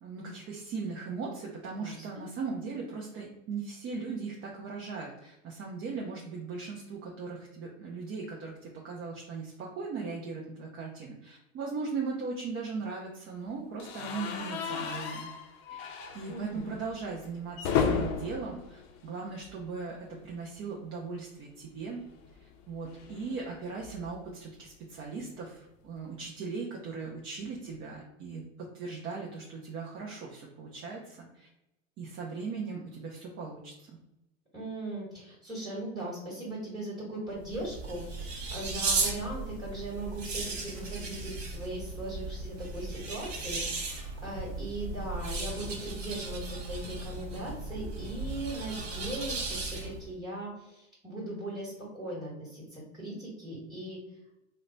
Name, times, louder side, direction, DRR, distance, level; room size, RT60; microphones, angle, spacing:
voice 1, 0.0-15.3 15.7-22.0 22.4-31.5 32.0-34.0, right 4 dB, 35° right, -2 dB, 0.6 m, -38 dB
voice 2, 1.8-2.2 16.3-16.6 34.5-54.0, right 1 dB, ahead, -6 dB, 1.3 m, -39 dB
sound 1, 13.8-19.8 20.1-20.3 20.6-20.7 21.9-24.3, left 6 dB, 40° left, 0.6 m, -35 dB
sound 2, 37.4-50.1, right 3 dB, 60° right, 1.4 m, -36 dB
3.0 x 2.2 x 3.8 m, 0.89 s
hypercardioid pair, 105°, 39 cm